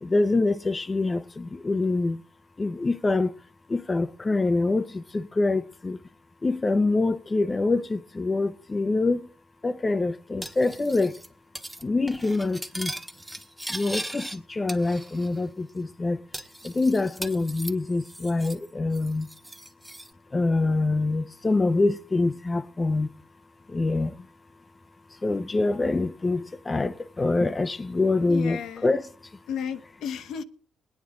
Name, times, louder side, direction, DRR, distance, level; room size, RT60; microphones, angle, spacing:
voice 1, 0.0-2.2 2.6-3.3 3.7-6.0 6.4-9.2 9.6-11.1 11.8-12.9 13.7-16.2 16.6-19.3 20.3-23.1 23.7-24.1 25.2-29.1, left 3 dB, 25° left, 0.6 m, -25 dB
Cutlery silverware, 10.4-11.3 11.5-11.8 12.1-14.4 14.7-15.4 15.7-15.8 16.3-18.7 18.9-20.1, right 1 dB, 5° right, 1.2 m, -38 dB
voice 2, 28.3-28.9 29.5-30.4, left 7 dB, 80° left, 1.0 m, -33 dB
22.0 x 9.5 x 3.7 m
cardioid pair, 90°, 0 cm